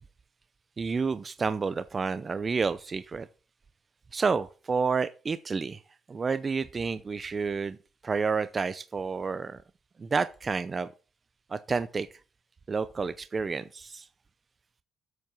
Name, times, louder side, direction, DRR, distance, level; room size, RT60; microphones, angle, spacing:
voice 1, 0.8-3.3 4.1-5.8 6.1-7.8 8.0-9.6 10.0-10.9 11.5-12.1 12.7-14.1, right 5 dB, 35° right, 0.6 m, -30 dB
8.0 x 7.2 x 7.5 m
cardioid pair, 90°, 0 cm